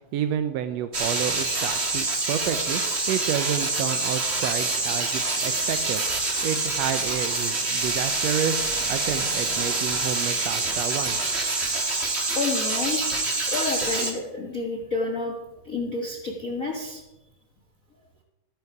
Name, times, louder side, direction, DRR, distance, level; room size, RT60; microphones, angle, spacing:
voice 1, 0.1-2.8 3.1-6.0 6.4-11.2, right 9 dB, 80° right, 9 dB, 1.5 m, -30 dB
sound 1, 0.9-14.1, right 3 dB, 35° right, 1.0 m, -26 dB
voice 2, 12.3-13.0 13.5-15.4 15.6-17.0, left 3 dB, 70° left, 1 dB, 0.7 m, -29 dB
14.0 x 10.0 x 4.8 m, 1.0 s
omnidirectional pair, 3.7 m